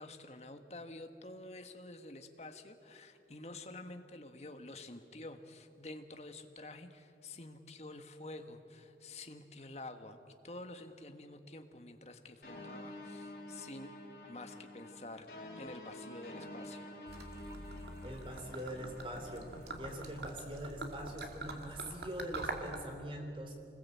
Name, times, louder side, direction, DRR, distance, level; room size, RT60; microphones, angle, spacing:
voice 1, 0.0-10.2 10.4-13.9 14.3-15.3 15.5-16.9, left 2 dB, 40° left, 7 dB, 1.4 m, -49 dB
sound 1, 12.4-20.0, left 1 dB, 55° left, 3.7 m, -49 dB
Gurgling / Liquid, 17.1-22.8, right 2 dB, 75° right, 2.3 m, -45 dB
voice 2, 18.0-19.5 19.8-23.6, right 1 dB, 30° right, 3 dB, 3.2 m, -43 dB
26.0 x 20.5 x 8.5 m, 2.6 s
head